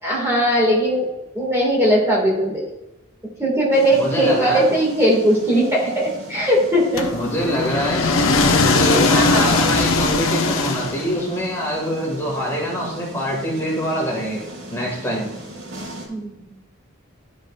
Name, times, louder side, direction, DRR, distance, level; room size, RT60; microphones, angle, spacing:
voice 1, 0.0-1.1 1.3-2.7 3.4-7.1 9.1-9.8 16.1-16.3, equal, 15° right, -4 dB, 1.8 m, -19 dB
sound 1, 3.7-16.1, right 1 dB, 70° right, 1.7 m, -38 dB
voice 2, 3.9-4.6 7.1-14.4 14.7-15.3, equal, 15° left, -4 dB, 1.9 m, -24 dB
sound 2, 7.0-11.4, left 3 dB, 85° left, 0.7 m, -19 dB
12.0 x 5.3 x 2.4 m, 0.93 s
head